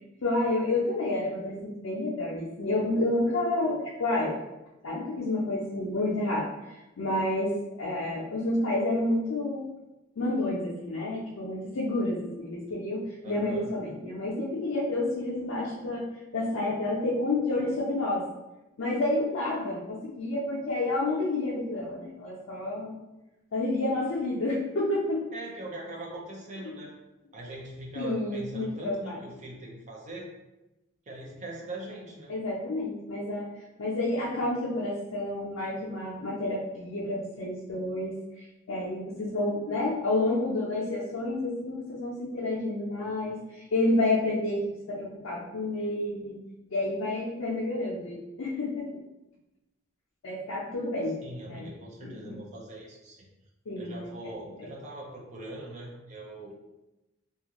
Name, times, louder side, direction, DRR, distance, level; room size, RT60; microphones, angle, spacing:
voice 1, 0.2-4.3 4.8-9.7 10.2-16.1 16.3-18.2 18.8-23.0 23.5-25.2 26.6-26.8 28.0-29.2 32.3-33.5 33.8-46.4 46.7-48.9 50.2-51.2 51.4-51.7 52.0-52.4 53.7-54.1 54.6-54.7, left 2 dB, 80° left, -5 dB, 0.5 m, -29 dB
voice 2, 13.2-13.7 25.3-26.9 27.3-30.3 31.1-32.4 51.2-53.3 53.8-56.5, right 1 dB, 35° right, -2 dB, 0.6 m, -41 dB
2.5 x 2.3 x 2.9 m, 0.99 s
head